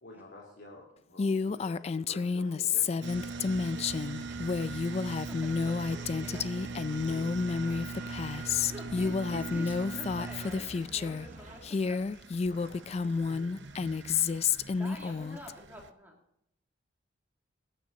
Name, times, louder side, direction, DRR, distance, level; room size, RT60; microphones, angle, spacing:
voice 1, 0.0-3.6 5.9-8.8 12.5-13.7, left 2 dB, 55° left, -3 dB, 2.8 m, -52 dB
Female speech woman speaking, 1.2-11.3 11.6-15.5, left 5 dB, 35° left, 0.3 m, -30 dB
sound 1, 3.0-15.9, right 4 dB, 60° right, 0.8 m, -42 dB
sound 2, 3.1-11.6, right 1 dB, 40° right, 1.1 m, -49 dB
voice 2, 5.3-6.9 8.3-12.1 14.8-16.2, left 1 dB, 10° right, -1 dB, 2.3 m, -48 dB
21.0 x 9.3 x 2.8 m, 0.77 s
head